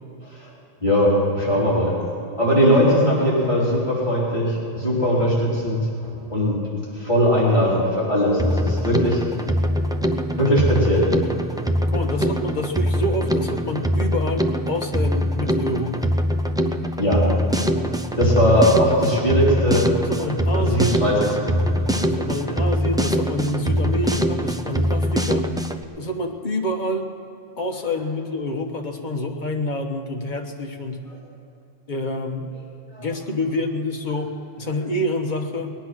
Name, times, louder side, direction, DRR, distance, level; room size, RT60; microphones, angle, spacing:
voice 1, 0.8-1.9 2.4-6.6 6.9-9.3 10.4-11.1 17.0-17.2 18.2-19.9 20.6-21.2 21.5-22.0 33.0-33.1, equal, 30° left, -8 dB, 3.9 m, -20 dB
Drum kit, 8.4-25.8, equal, 5° right, 0.4 m, -23 dB
voice 2, 11.9-16.1 19.1-19.4 20.0-21.1 22.0-25.4 26.0-27.1 27.6-31.1 31.9-32.5 33.0-34.3 34.6-35.7, left 1 dB, 45° left, 2 dB, 1.4 m, -27 dB
20.5 x 10.0 x 6.1 m, 2.9 s
omnidirectional pair, 1.1 m